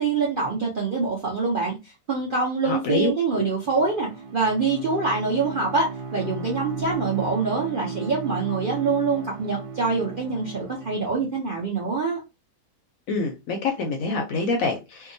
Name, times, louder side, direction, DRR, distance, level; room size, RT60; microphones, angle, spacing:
voice 1, 0.0-12.2, right 4 dB, 55° right, 0.5 m, -25 dB
voice 2, 2.6-3.1 3.4-3.5 13.1-15.1, left 3 dB, 65° left, 0.9 m, -26 dB
Bowed string instrument, 3.6-11.3, right 4 dB, 80° right, 1.1 m, -36 dB
2.8 x 2.2 x 2.6 m
omnidirectional pair, 1.7 m